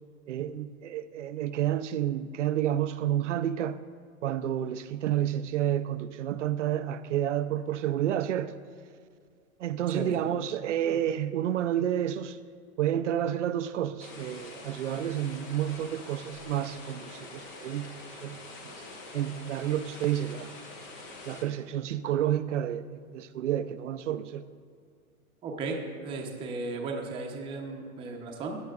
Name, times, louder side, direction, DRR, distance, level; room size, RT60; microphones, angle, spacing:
voice 1, 0.3-3.8 4.2-8.5 9.6-12.4 12.8-17.9 18.2-18.4 18.6-18.8 19.1-20.5 21.3-24.5, right 11 dB, 55° right, 0.6 m, -30 dB
sound 1, 14.0-21.4, left 2 dB, 15° left, 0.4 m, -45 dB
voice 2, 25.4-28.6, right 3 dB, 10° right, 0.8 m, -35 dB
17.0 x 10.0 x 2.4 m
hypercardioid pair, 140°, 44 cm